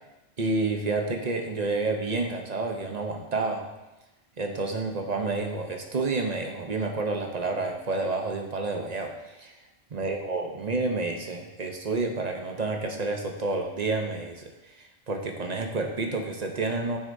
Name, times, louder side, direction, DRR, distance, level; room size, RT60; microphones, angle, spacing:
voice 1, 0.4-3.7 4.4-9.1 9.4-9.5 9.9-14.5 14.8-17.0, right 3 dB, 40° right, 3 dB, 0.8 m, -29 dB
8.9 x 6.2 x 2.7 m, 1.0 s
omnidirectional pair, 1.1 m